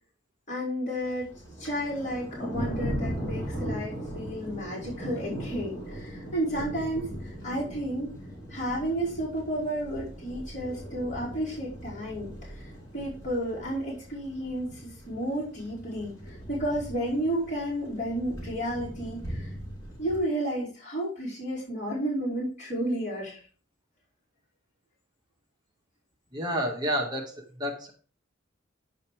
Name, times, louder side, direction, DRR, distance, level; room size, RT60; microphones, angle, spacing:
voice 1, 0.5-1.3 1.6-8.1 8.5-19.5 20.0-23.4, right 1 dB, 35° left, -8 dB, 4.9 m, -32 dB
Thunder, 1.0-20.2, equal, 15° left, 4.9 m, -39 dB
voice 2, 26.3-27.9, equal, 20° right, 0 dB, 1.8 m, -30 dB
10.5 x 5.7 x 5.0 m, 0.40 s
head